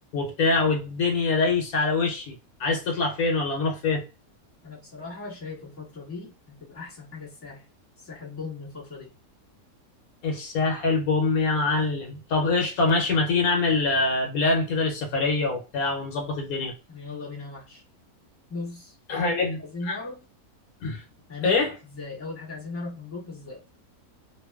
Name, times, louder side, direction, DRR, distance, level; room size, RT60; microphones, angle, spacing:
voice 1, 0.1-2.3 2.6-4.0 10.2-16.7 19.1-19.6 19.9-20.0 20.8-21.0 21.4-21.7, left 3 dB, 75° left, 1.1 m, -24 dB
voice 2, 4.6-7.7 8.0-9.1 16.9-17.8 18.5-20.2 21.3-21.6 21.8-23.6, left 3 dB, 10° left, 1.1 m, -38 dB
2.6 x 2.3 x 2.2 m
omnidirectional pair, 1.6 m